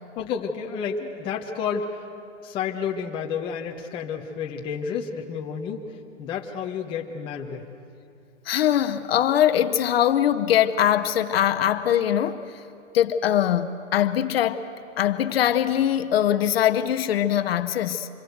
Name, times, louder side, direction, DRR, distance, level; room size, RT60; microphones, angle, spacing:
voice 1, 0.2-1.9 2.4-5.9 6.2-7.6, left 6 dB, 15° left, 0 dB, 0.9 m, -30 dB
voice 2, 8.5-12.4 12.9-14.6 15.0-18.1, left 10 dB, 50° left, 10 dB, 1.0 m, -22 dB
26.5 x 22.5 x 8.0 m, 2.6 s
hypercardioid pair, 170°, 39 cm